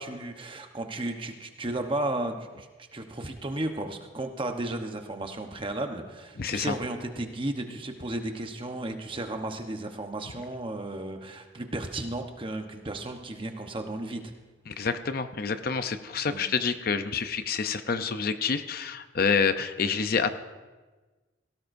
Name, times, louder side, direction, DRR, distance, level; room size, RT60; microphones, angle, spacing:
voice 1, 0.0-14.2 16.3-16.4, right 2 dB, 25° right, 5 dB, 1.0 m, -34 dB
voice 2, 6.4-6.7 14.7-20.4, left 5 dB, 50° left, 9 dB, 0.6 m, -28 dB
18.0 x 16.5 x 2.7 m, 1.3 s
head